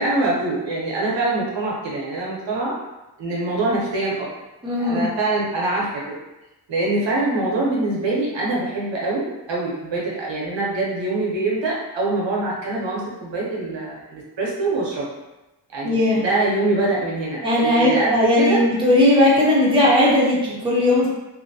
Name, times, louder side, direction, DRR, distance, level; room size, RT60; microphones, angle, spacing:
voice 1, 0.0-2.7 3.2-4.2 4.8-6.2 6.7-15.1 15.7-18.6, right 2 dB, 75° right, -4 dB, 0.9 m, -24 dB
voice 2, 4.6-5.0 15.8-16.2 17.4-21.1, left 1 dB, 10° right, -6 dB, 0.6 m, -17 dB
2.6 x 2.1 x 2.6 m, 1.0 s
wide cardioid pair, 105°, 44 cm